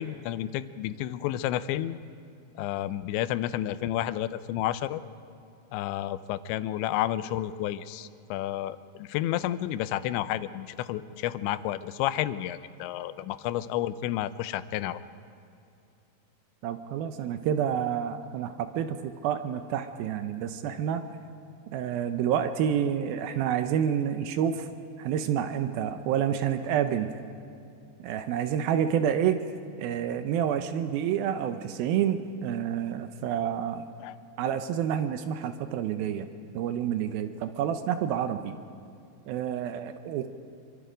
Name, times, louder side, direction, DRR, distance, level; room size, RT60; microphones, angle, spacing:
voice 1, 0.0-2.0 2.6-5.0 5.7-15.0 34.0-34.2, left 13 dB, 85° left, 13 dB, 3.0 m, -31 dB
voice 2, 16.6-21.0 21.7-24.7 25.0-27.1 28.0-29.4 29.8-33.9 34.4-36.3 36.5-38.6 39.3-40.3, right 9 dB, 85° right, 9 dB, 2.1 m, -28 dB
26.0 x 24.0 x 5.1 m, 2.6 s
omnidirectional pair, 5.1 m